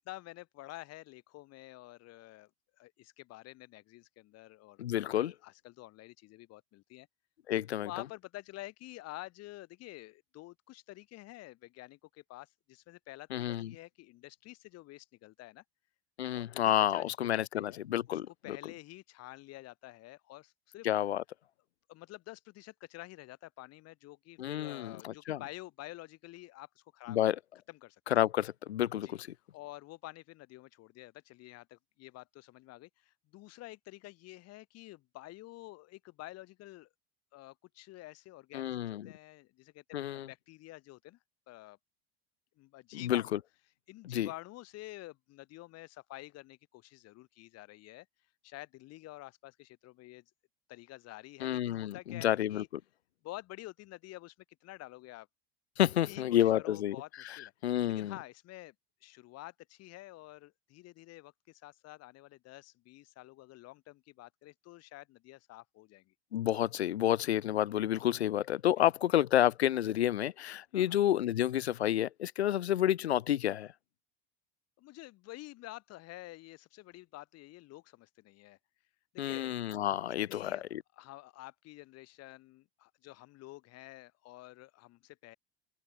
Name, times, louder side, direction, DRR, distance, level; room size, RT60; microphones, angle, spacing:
voice 1, 0.0-2.5 2.8-7.1 7.8-15.6 16.3-17.8 18.1-20.9 21.9-27.2 27.7-28.0 29.0-29.2 29.5-36.9 37.3-41.2 41.5-41.8 42.6-43.4 43.9-48.1 48.4-50.2 50.7-52.7 53.2-54.3 54.6-55.3 56.0-57.5 57.9-58.7 59.0-66.1 68.8-68.9 70.7-71.0 74.8-78.6 79.1-79.6 80.3-80.6 81.0-85.4, left 18 dB, 50° left, 3.4 m, -49 dB
voice 2, 4.8-5.3 7.5-7.9 13.3-13.7 16.2-18.6 20.8-21.2 24.4-25.4 27.1-27.4 28.1-29.3 38.5-39.1 39.9-40.3 42.9-43.4 44.1-44.3 51.4-52.6 55.8-57.0 57.6-58.1 66.3-73.7 79.2-80.8, left 12 dB, 85° left, 0.5 m, -30 dB
figure-of-eight pair, 75°, 32 cm